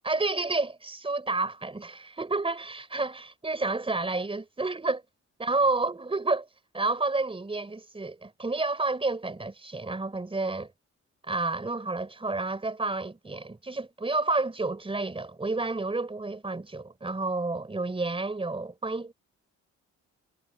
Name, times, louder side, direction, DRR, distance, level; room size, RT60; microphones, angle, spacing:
voice 1, 0.0-5.0 5.4-6.5 6.7-10.7 11.3-19.1, right 3 dB, 20° right, 4.6 m, -30 dB
cardioid pair, 90°, 30 cm